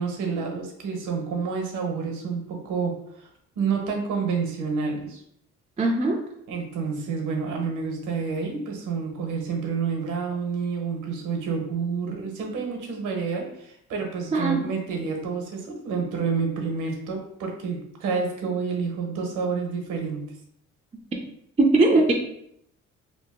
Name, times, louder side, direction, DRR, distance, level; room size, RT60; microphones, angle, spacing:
voice 1, 0.0-3.3 3.6-5.2 6.5-20.2, right 5 dB, 80° right, 2 dB, 0.9 m, -29 dB
voice 2, 5.8-6.2 14.3-14.6 21.6-22.1, right 2 dB, 20° right, 0 dB, 0.5 m, -19 dB
2.9 x 2.5 x 3.6 m, 0.73 s
cardioid pair, 90°, 30 cm